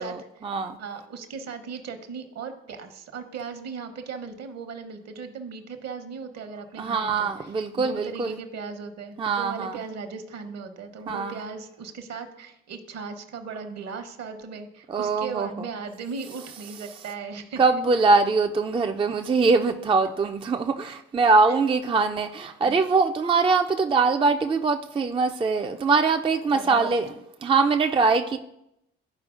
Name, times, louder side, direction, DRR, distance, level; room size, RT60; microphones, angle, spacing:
voice 1, 0.0-0.8 6.8-8.4 9.2-9.8 11.1-11.4 14.9-15.7 17.6-27.1 27.4-28.4, right 4 dB, 15° right, 5 dB, 0.4 m, -22 dB
voice 2, 0.8-7.5 7.8-17.8 21.5-21.6 22.6-22.8 26.5-26.9, right 5 dB, 55° right, 8 dB, 1.0 m, -37 dB
11.5 x 4.7 x 2.5 m, 0.83 s
figure-of-eight pair, 45°, 31 cm